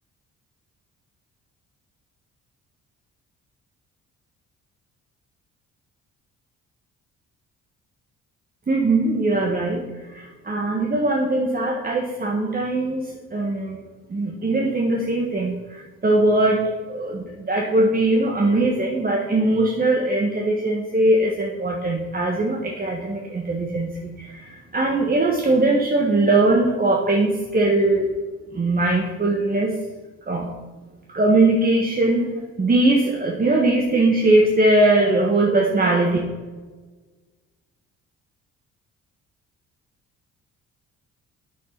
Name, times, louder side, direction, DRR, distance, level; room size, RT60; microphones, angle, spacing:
voice 1, 8.7-9.8 10.1-13.8 14.1-28.1 28.5-29.8 30.3-30.5 31.1-36.2, right 2 dB, 30° right, 0 dB, 1.5 m, -20 dB
9.5 x 7.4 x 5.9 m, 1.3 s
cardioid pair, 90°, 30 cm